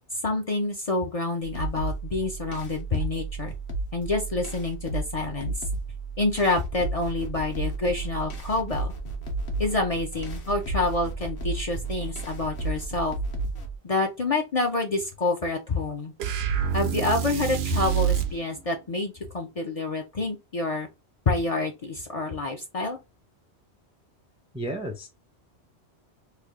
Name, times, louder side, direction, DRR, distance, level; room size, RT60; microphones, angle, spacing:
voice 1, 0.2-3.5 3.9-5.5 6.2-8.9 9.6-13.2 13.8-16.1 16.7-20.9 21.3-23.0, left 3 dB, 40° left, 0.6 m, -27 dB
sound 1, 1.4-13.8, right 3 dB, 60° left, 1.1 m, -33 dB
sound 2, 16.2-18.4, right 9 dB, 75° right, 0.8 m, -26 dB
voice 2, 24.5-25.1, right 1 dB, 10° right, 0.4 m, -32 dB
3.3 x 2.3 x 3.5 m
omnidirectional pair, 1.1 m